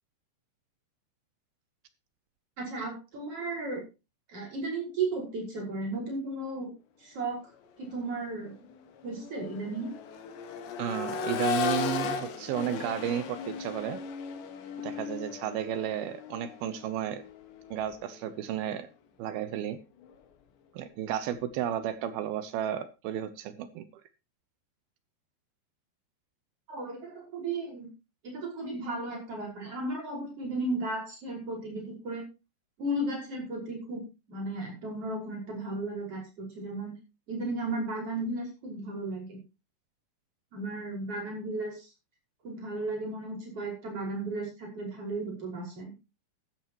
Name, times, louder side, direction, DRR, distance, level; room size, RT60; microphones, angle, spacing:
voice 1, 2.6-3.8 4.3-6.7 7.0-7.4 7.8-8.6 9.0-9.9 26.7-27.9 28.2-32.3 32.8-37.0 37.3-39.4 40.5-41.9 42.4-45.9, right 2 dB, 35° right, 0 dB, 6.2 m, -35 dB
Accelerating revving vroom, 7.8-8.0 8.4-18.3 20.0-20.1, left 6 dB, 85° left, 3.8 m, -36 dB
voice 2, 10.8-14.0 14.8-17.2 17.7-18.9 19.2-19.8 20.7-23.8, right 10 dB, 75° right, 12 dB, 2.5 m, -33 dB
14.0 x 13.0 x 3.0 m, 0.28 s
omnidirectional pair, 4.8 m